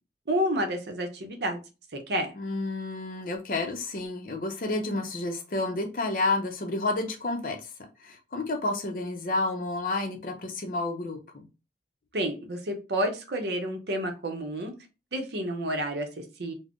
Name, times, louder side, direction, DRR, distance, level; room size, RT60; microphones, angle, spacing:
voice 1, 0.3-1.6 1.9-2.3 12.1-14.7 15.1-16.5, equal, 70° right, 5 dB, 0.6 m, -30 dB
voice 2, 2.4-7.7 8.0-11.5, left 2 dB, 50° left, 4 dB, 0.5 m, -30 dB
2.4 x 2.0 x 3.5 m, 0.30 s
head